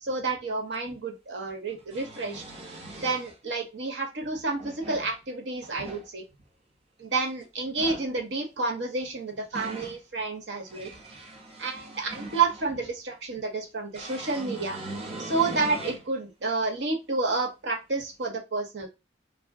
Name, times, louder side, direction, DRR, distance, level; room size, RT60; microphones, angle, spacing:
voice 1, 0.0-2.4 3.0-6.2 7.0-10.9 11.6-14.8 15.2-18.9, right 3 dB, 80° right, 3 dB, 0.8 m, -30 dB
sound 1, 0.7-0.8 1.7-3.3 4.4-5.1 5.6-6.1 7.6-8.1 9.1-10.0 10.5-12.7 13.9-16.1 16.6-16.7 18.2-18.3, right 2 dB, 35° right, 0.7 m, -40 dB
2.4 x 2.1 x 3.4 m, 0.24 s
head